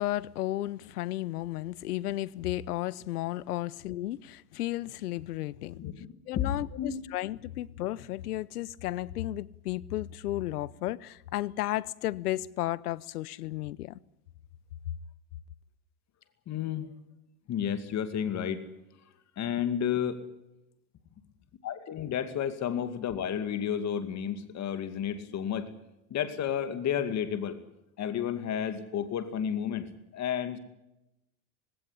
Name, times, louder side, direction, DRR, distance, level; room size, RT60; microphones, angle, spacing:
voice 1, 0.0-5.8 6.3-14.0, left 15 dB, 90° left, 0.9 m, -33 dB
voice 2, 5.7-6.1 6.3-7.0 16.5-16.9 17.5-18.6 19.4-20.2 21.6-25.7 26.1-27.6 28.0-29.9 30.1-30.6, left 9 dB, 35° left, 2.4 m, -31 dB
19.5 x 17.0 x 9.9 m
supercardioid pair, 110°, 44 cm